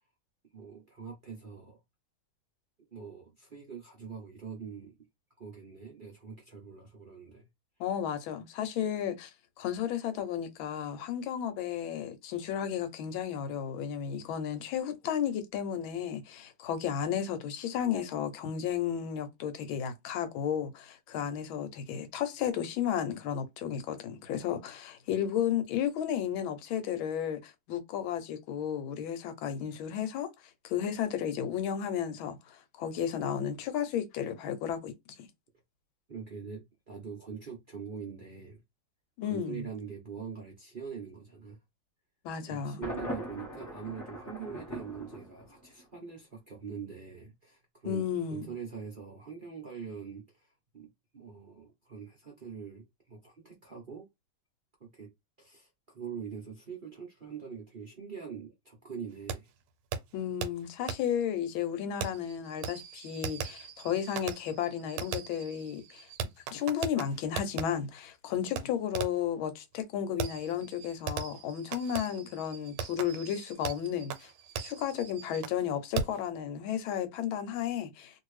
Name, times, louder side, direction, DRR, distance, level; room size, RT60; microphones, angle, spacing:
voice 1, 0.5-1.8 2.9-4.9 5.4-7.5 36.1-38.6 39.2-41.6 42.5-48.0 48.3-54.1 54.8-55.1 55.4-59.5, right 6 dB, 65° right, 0.5 m, -43 dB
voice 2, 7.8-9.3 9.6-30.3 30.6-34.9 39.2-39.7 42.2-42.8 47.8-48.5 60.1-66.1 66.5-74.3 74.6-78.2, left 9 dB, 75° left, 1.4 m, -33 dB
Thunder, 42.8-45.8, equal, 30° left, 0.3 m, -40 dB
Fireworks, 59.3-59.4 59.9-60.0 60.4-60.5 60.9-61.0 62.0-67.6 68.6-68.7 68.9-69.3 70.2-75.6 75.9-76.2, right 6 dB, 85° right, 1.5 m, -38 dB
3.0 x 2.7 x 3.1 m
omnidirectional pair, 2.3 m